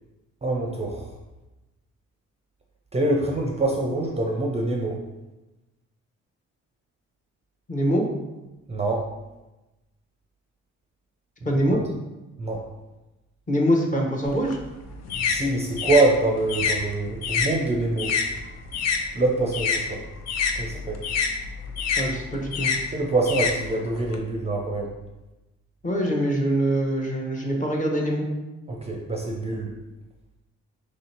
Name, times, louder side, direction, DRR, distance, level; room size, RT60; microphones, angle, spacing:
voice 1, 0.4-1.1 2.9-5.0 8.7-9.1 12.4-12.6 15.2-18.1 19.1-20.0 20.6-21.0 22.9-24.9 28.7-29.7, right 2 dB, 20° right, 0 dB, 0.5 m, -25 dB
voice 2, 7.7-8.1 11.4-11.8 13.5-14.6 22.0-22.7 25.8-28.3, equal, 25° left, -1 dB, 0.8 m, -24 dB
sound 1, 14.3-19.0 19.3-24.2, left 5 dB, 60° left, 0.5 m, -27 dB
3.1 x 2.8 x 4.3 m, 1.0 s
cardioid pair, 90°, 30 cm